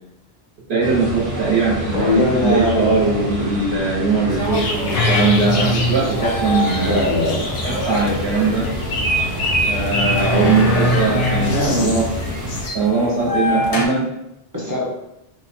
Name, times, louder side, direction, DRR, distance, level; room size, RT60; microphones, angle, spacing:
voice 1, 0.7-7.1 7.6-8.7 9.6-12.1 12.7-14.1, right 4 dB, 75° right, -5 dB, 1.1 m, -20 dB
sound 1, 0.8-12.7, equal, 50° right, 1.1 m, -27 dB
voice 2, 1.9-2.9 6.7-7.5 11.5-12.0 14.5-14.9, left 1 dB, 20° right, -4 dB, 0.6 m, -20 dB
sound 2, 4.3-13.8, left 1 dB, 55° left, 0.4 m, -24 dB
sound 3, 4.5-12.7, equal, 75° left, 0.8 m, -27 dB
2.9 x 2.2 x 4.1 m, 0.85 s
omnidirectional pair, 1.1 m